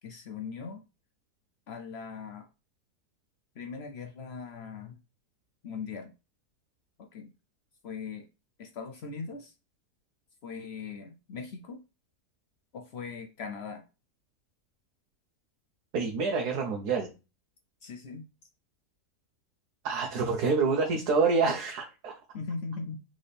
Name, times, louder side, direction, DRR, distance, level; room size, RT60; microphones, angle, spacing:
voice 1, 0.0-0.8 1.7-2.5 3.6-5.0 5.6-6.1 7.0-7.3 7.8-8.3 8.6-9.5 10.4-11.8 12.7-13.8 17.8-18.2 22.3-23.0, left 5 dB, 70° left, 0.6 m, -40 dB
voice 2, 15.9-17.1 19.8-22.2, right 4 dB, 80° right, 1.3 m, -27 dB
3.8 x 3.3 x 4.0 m
omnidirectional pair, 1.7 m